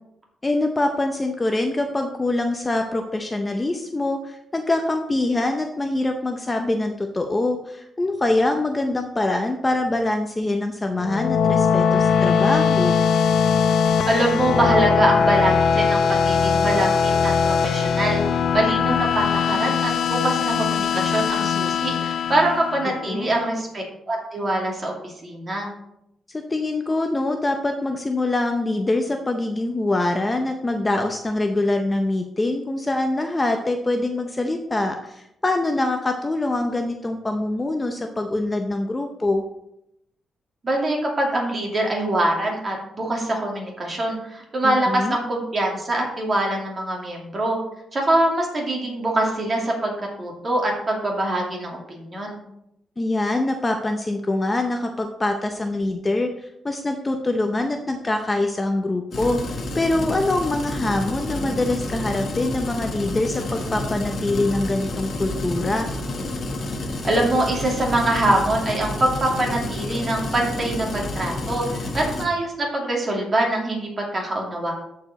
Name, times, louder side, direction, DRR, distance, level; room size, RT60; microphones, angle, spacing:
voice 1, 0.4-13.0 23.1-23.6 26.3-39.4 44.6-45.2 53.0-65.9, left 2 dB, 20° left, 5 dB, 0.6 m, -24 dB
sound 1, 11.0-23.3, left 6 dB, 65° left, 0.5 m, -20 dB
voice 2, 14.0-18.2 18.5-25.7 40.6-47.6 47.9-52.4 67.0-74.7, right 1 dB, 30° right, -1 dB, 2.5 m, -24 dB
sound 2, 59.1-72.3, left 2 dB, 50° left, 1.2 m, -29 dB
13.5 x 4.8 x 4.1 m, 0.82 s
cardioid pair, 130°, 0 cm